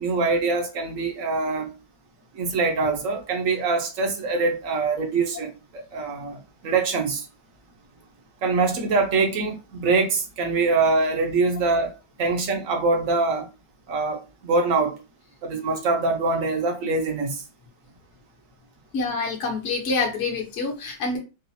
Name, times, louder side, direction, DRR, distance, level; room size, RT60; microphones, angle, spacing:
voice 1, 0.0-1.7 2.3-7.3 8.4-11.9 12.2-13.5 13.9-14.9 15.4-17.4, right 3 dB, 60° right, 1.1 m, -24 dB
voice 2, 18.9-21.2, left 3 dB, 50° left, 1.2 m, -26 dB
4.0 x 2.4 x 2.7 m
omnidirectional pair, 1.7 m